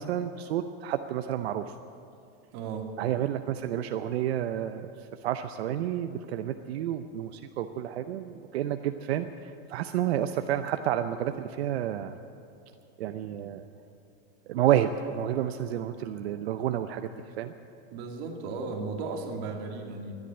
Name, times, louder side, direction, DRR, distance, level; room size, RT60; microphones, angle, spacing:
voice 1, 0.0-1.7 3.0-12.2 13.0-13.6 14.5-17.1 17.4-17.5, right 11 dB, 90° right, 8 dB, 0.7 m, -30 dB
voice 2, 2.5-2.9 17.9-20.2, right 4 dB, 50° right, 2 dB, 2.2 m, -35 dB
13.0 x 10.5 x 8.8 m, 2.5 s
supercardioid pair, 155°, 31 cm